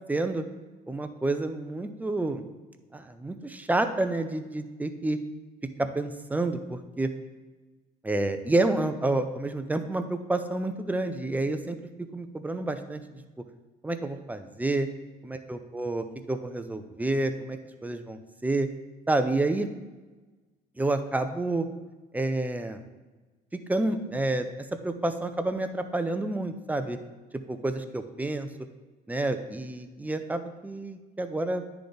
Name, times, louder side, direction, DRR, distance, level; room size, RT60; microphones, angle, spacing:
voice 1, 0.1-0.4 0.9-2.4 2.9-5.2 5.8-7.1 8.0-13.0 13.8-14.9 15.2-18.7 19.1-19.7 20.8-21.7 22.1-22.8 23.5-27.0 27.5-28.5 29.1-31.6, right 2 dB, 10° right, 8 dB, 0.5 m, -29 dB
9.6 x 3.4 x 3.9 m, 1.3 s
cardioid pair, 110°, 17 cm